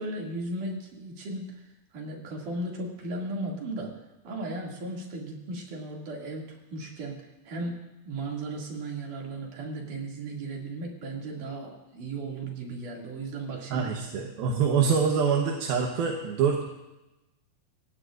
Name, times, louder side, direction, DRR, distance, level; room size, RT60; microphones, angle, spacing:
voice 1, 0.0-1.6 1.9-3.9 4.2-7.2 7.5-7.8 8.1-13.9, right 2 dB, 60° right, -1 dB, 4.0 m, -36 dB
voice 2, 13.7-16.7, right 6 dB, 75° right, 1 dB, 3.0 m, -25 dB
27.5 x 15.5 x 2.6 m, 1.0 s
omnidirectional pair, 4.3 m